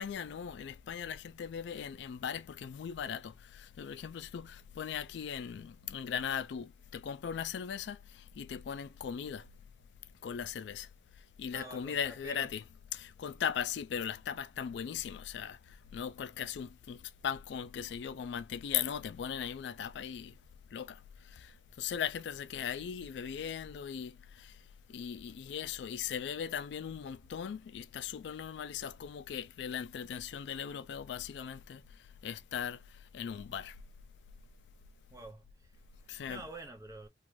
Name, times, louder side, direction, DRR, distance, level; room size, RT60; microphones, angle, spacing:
voice 1, 0.0-8.0 8.4-9.5 10.2-10.9 11.4-12.6 12.9-15.6 15.9-20.3 20.7-21.0 21.4-21.5 21.8-24.5 24.9-31.8 32.2-32.8 33.1-33.7 36.1-36.4, left 8 dB, 80° left, 0.3 m, -38 dB
voice 2, 11.5-12.7 35.1-37.1, right 2 dB, 15° right, 0.5 m, -48 dB
2.6 x 2.3 x 3.0 m
head